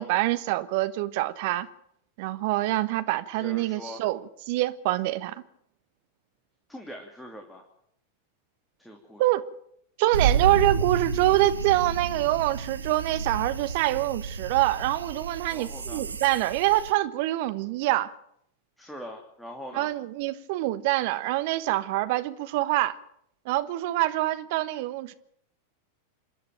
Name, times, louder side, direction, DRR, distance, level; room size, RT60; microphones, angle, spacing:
voice 1, 0.0-1.7 2.2-4.2 4.5-5.4 9.2-9.4 10.0-18.1 19.7-23.0 23.4-25.1, right 16 dB, 50° right, 1.3 m, -25 dB
voice 2, 3.3-4.0 6.7-7.7 8.8-9.2 15.5-16.0 18.8-19.9, equal, 5° left, 2.9 m, -42 dB
sound 1, 10.1-16.9, right 6 dB, 75° right, 1.2 m, -30 dB
27.5 x 11.0 x 9.1 m
figure-of-eight pair, 90°, 0 cm